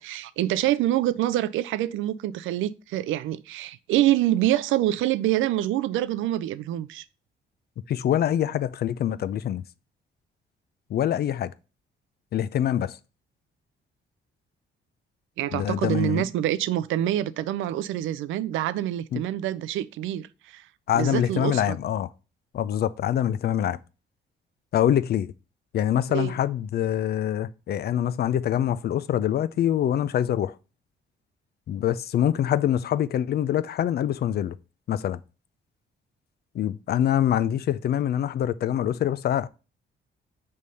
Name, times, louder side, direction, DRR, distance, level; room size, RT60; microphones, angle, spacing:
voice 1, 0.0-7.0 15.4-20.6 20.9-21.8 26.1-26.3, right 13 dB, 85° right, 0.4 m, -26 dB
voice 2, 7.9-9.7 10.9-11.5 12.3-13.0 15.5-16.3 19.1-19.2 20.9-22.1 22.5-23.8 24.7-25.3 25.7-30.6 31.7-34.6 34.9-35.2 36.5-39.5, left 10 dB, 55° left, 0.4 m, -25 dB
5.3 x 3.2 x 5.5 m
cardioid pair, 90°, 20 cm